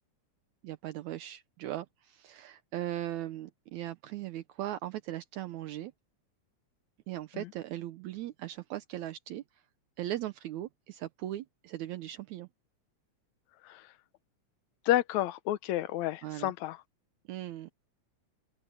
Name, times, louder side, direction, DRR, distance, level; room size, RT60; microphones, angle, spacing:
voice 1, 0.6-5.9 7.1-9.4 10.0-12.5 16.2-16.5 17.3-17.7, right 14 dB, 75° right, 2.1 m, -38 dB
voice 2, 14.9-16.8, left 14 dB, 75° left, 2.0 m, -30 dB
open air
omnidirectional pair, 3.5 m